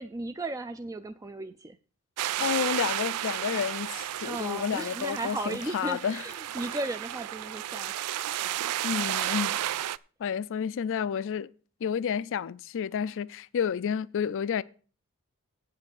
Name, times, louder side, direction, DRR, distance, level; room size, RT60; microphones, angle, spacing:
voice 1, 0.0-1.8 4.2-7.9, right 2 dB, 15° right, 0.4 m, -35 dB
sound 1, 2.2-10.0, right 12 dB, 85° right, 0.4 m, -32 dB
voice 2, 2.4-6.3 8.8-9.5 10.2-11.5 11.8-14.6, left 7 dB, 60° left, 0.4 m, -30 dB
8.6 x 6.6 x 7.1 m
head